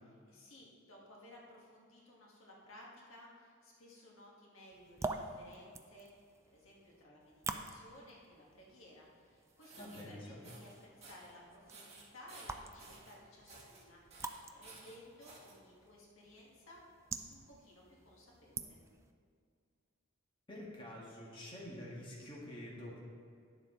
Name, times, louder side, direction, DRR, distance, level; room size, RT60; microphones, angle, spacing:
voice 1, 0.2-6.1 6.4-16.8 17.3-18.8, left 1 dB, 80° left, -3 dB, 1.7 m, -58 dB
sound 1, 4.7-19.1, right 3 dB, 15° right, 0.4 m, -48 dB
sound 2, 9.5-10.0 10.4-10.7 11.0-11.3 11.7-13.1 13.5-13.8 14.1-15.5, right 3 dB, 30° right, 1.7 m, -55 dB
voice 2, 9.8-10.4 20.5-23.0, left 1 dB, 25° left, -5 dB, 1.6 m, -47 dB
10.0 x 6.7 x 3.8 m, 2.2 s
head